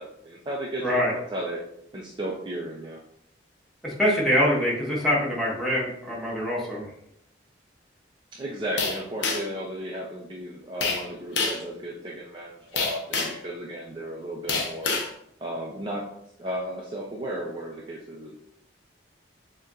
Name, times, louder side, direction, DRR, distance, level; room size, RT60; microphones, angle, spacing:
voice 1, 0.0-1.6 1.9-3.0 8.3-15.0 15.4-16.0 16.4-18.5, right 1 dB, 25° right, -3 dB, 0.5 m, -34 dB
voice 2, 0.8-1.1 3.8-6.9, equal, ahead, -6 dB, 1.3 m, -24 dB
sound 1, 8.8-9.6 10.8-11.0 11.4-11.7 12.8-13.4 14.5-15.1, left 4 dB, 80° left, 0.7 m, -27 dB
6.7 x 2.9 x 2.5 m, 0.74 s
head